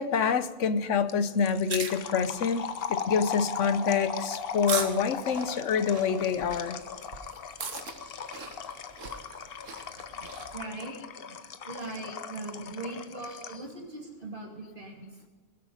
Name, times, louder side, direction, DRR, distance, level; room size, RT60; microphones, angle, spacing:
voice 1, 0.0-6.8, left 6 dB, 75° left, 11 dB, 1.2 m, -27 dB
sound 1, 1.1-13.7, left 6 dB, 55° left, 0.9 m, -38 dB
sound 2, 1.5-10.6, right 5 dB, 90° right, 1.5 m, -40 dB
voice 2, 10.1-15.2, right 2 dB, 45° right, -1 dB, 3.0 m, -41 dB
19.5 x 8.0 x 5.0 m, 1.4 s
omnidirectional pair, 1.3 m